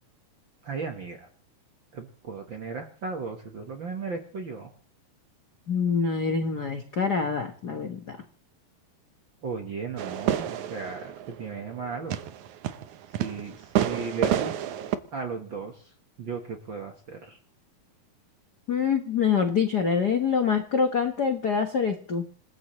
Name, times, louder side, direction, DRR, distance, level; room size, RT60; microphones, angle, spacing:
voice 1, 0.6-1.3 1.9-4.7 9.4-12.2 13.2-14.7 15.1-15.9 16.2-17.4, right 4 dB, 50° right, 4 dB, 1.4 m, -36 dB
voice 2, 5.7-8.2 18.7-22.2, left 6 dB, 60° left, 5 dB, 1.0 m, -25 dB
sound 1, 10.0-15.0, right 10 dB, 70° right, 2.0 m, -29 dB
27.5 x 16.0 x 3.2 m, 0.41 s
omnidirectional pair, 4.1 m